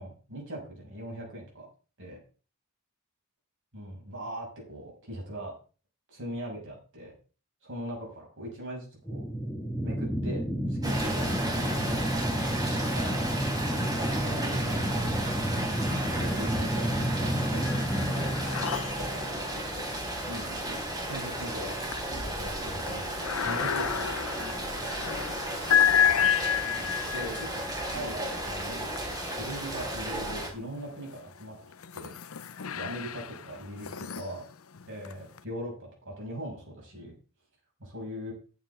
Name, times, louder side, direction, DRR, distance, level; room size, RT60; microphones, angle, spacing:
voice 1, 0.0-1.7 2.0-2.2 3.7-5.5 6.1-7.1 7.6-9.2 9.8-12.3 12.9-13.3 14.2-15.1 16.1-18.3 18.5-18.7 19.0-19.8 20.3-20.5 21.1-24.2 26.8-27.7 27.9-28.9 29.3-31.6 31.9-32.1 32.7-34.4 34.9-37.1 37.8-38.3, equal, 60° right, -1 dB, 6.4 m, -40 dB
sound 1, 9.1-20.0, equal, 5° left, 2.1 m, -31 dB
Rain, 10.8-30.5, right 1 dB, 20° right, 3.8 m, -34 dB
sound 2, 16.1-16.8 17.1-30.3 30.9-35.4, left 9 dB, 75° left, 0.7 m, -32 dB
14.5 x 9.1 x 3.7 m, 0.36 s
head